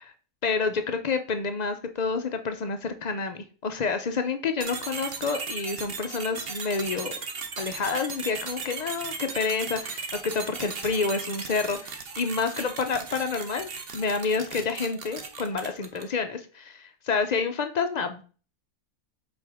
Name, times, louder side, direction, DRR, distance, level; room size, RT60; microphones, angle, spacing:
voice 1, 0.4-7.1 7.6-18.2, left 4 dB, 75° left, 8 dB, 0.3 m, -29 dB
sound 1, 4.6-16.2, right 5 dB, 45° right, 1.0 m, -37 dB
7.7 x 4.6 x 3.4 m, 0.38 s
omnidirectional pair, 1.5 m